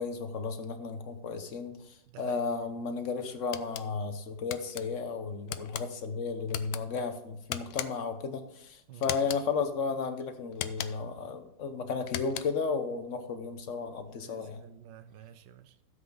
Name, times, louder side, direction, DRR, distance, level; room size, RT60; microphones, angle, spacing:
voice 1, 0.0-14.6, left 5 dB, 50° left, 1.1 m, -34 dB
voice 2, 2.1-2.4 8.9-9.2 14.1-15.8, right 9 dB, 70° right, 1.2 m, -51 dB
sound 1, 3.5-3.9 4.5-4.8 5.5-5.9 6.5-6.8 7.5-8.1 9.0-9.5 10.5-11.1 12.0-12.7, left 12 dB, 85° left, 1.4 m, -38 dB
13.0 x 7.9 x 3.9 m
omnidirectional pair, 2.1 m